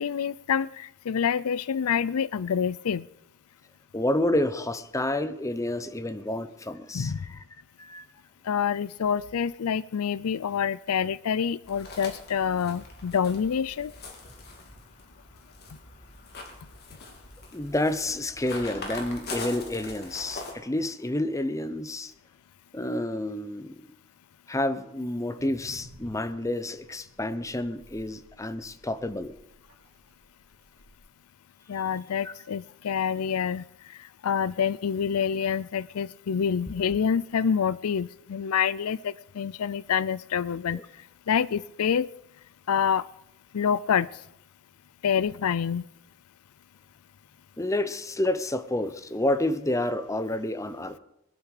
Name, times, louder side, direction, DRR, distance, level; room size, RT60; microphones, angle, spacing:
voice 1, 0.0-3.1 6.9-7.2 8.5-13.9 31.7-33.6 34.2-40.8 41.3-42.1 42.7-43.0 43.5-44.1 45.0-45.8, left 7 dB, 90° left, 20 dB, 0.4 m, -27 dB
voice 2, 3.9-7.4 7.8-8.0 17.5-22.1 22.7-23.8 24.5-29.3 32.2-32.3 40.7-40.8 47.6-51.0, left 1 dB, 15° left, 12 dB, 0.8 m, -29 dB
sound 1, 11.6-20.5, left 3 dB, 50° left, 3.3 m, -42 dB
sound 2, 25.4-30.9, equal, 45° right, 4.3 m, -54 dB
21.5 x 12.0 x 5.0 m, 0.85 s
head